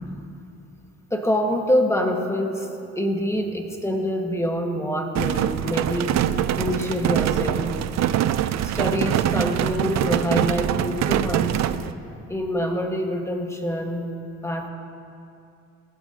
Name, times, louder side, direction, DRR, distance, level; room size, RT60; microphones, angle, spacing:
voice 1, 1.1-2.7 2.9-6.1 6.6-7.8 8.6-11.7 12.3-14.1 14.4-14.7, equal, 10° left, 2 dB, 1.5 m, -25 dB
sound 1, 5.2-11.9, right 11 dB, 65° right, 0.5 m, -23 dB
18.5 x 13.0 x 2.8 m, 2.5 s
cardioid pair, 90°, 30 cm